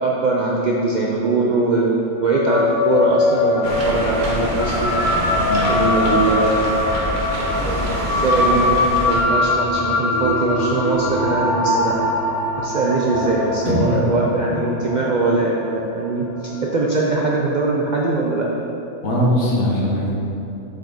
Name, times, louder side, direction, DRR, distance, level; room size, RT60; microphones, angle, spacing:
voice 1, 0.0-4.9 5.7-7.2 7.6-11.9 12.6-16.2 16.7-18.5, right 2 dB, 60° right, -3 dB, 0.4 m, -21 dB
sound 1, 2.2-16.9, left 2 dB, 50° left, 1.0 m, -22 dB
sound 2, 3.6-9.2, equal, 40° right, 0.9 m, -25 dB
voice 2, 13.6-14.0 14.5-14.6 19.0-20.1, equal, 75° left, -4 dB, 1.6 m, -20 dB
7.1 x 4.5 x 3.9 m, 2.8 s
omnidirectional pair, 1.4 m